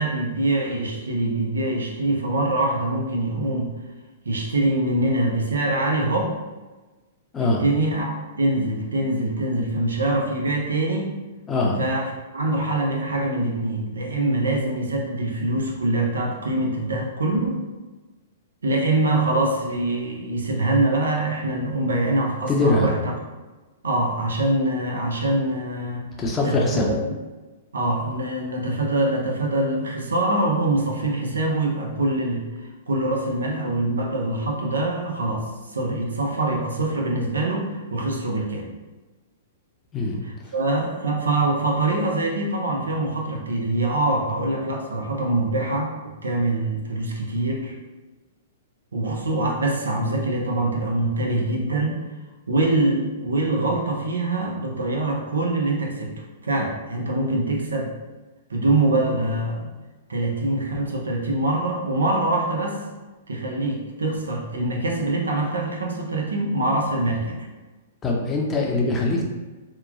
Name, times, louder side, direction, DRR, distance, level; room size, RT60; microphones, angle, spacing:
voice 1, 0.0-3.7 4.2-6.4 7.4-11.2 11.8-17.6 18.6-23.0 23.8-26.1 26.4-26.7 27.7-32.5 32.9-38.7 40.5-47.8 48.9-52.0 52.5-57.9 58.5-59.7 60.1-62.8 63.3-67.5, right 2 dB, 90° right, 0 dB, 0.6 m, -24 dB
voice 2, 11.5-11.8 22.5-22.9 26.2-26.9 39.9-40.2 40.4-40.5 68.0-69.3, left 2 dB, 20° left, -1 dB, 0.6 m, -22 dB
2.9 x 2.2 x 2.3 m, 1.2 s
hypercardioid pair, 120°, 0 cm